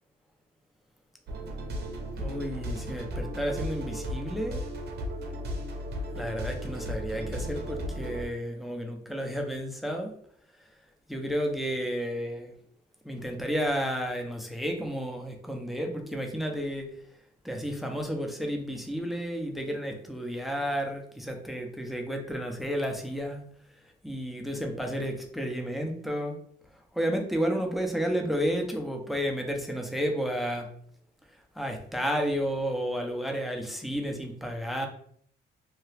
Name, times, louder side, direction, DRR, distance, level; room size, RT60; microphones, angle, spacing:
sound 1, 1.3-8.3, equal, 55° right, 0.7 m, -35 dB
voice 1, 2.2-4.6 6.1-10.1 10.6-10.7 11.1-12.5 13.0-17.0 17.4-23.5 23.8-26.4 26.7-30.7 31.3-34.9, equal, ahead, 3 dB, 0.5 m, -32 dB
2.8 x 2.2 x 3.2 m, 0.63 s
cardioid pair, 90°, 20 cm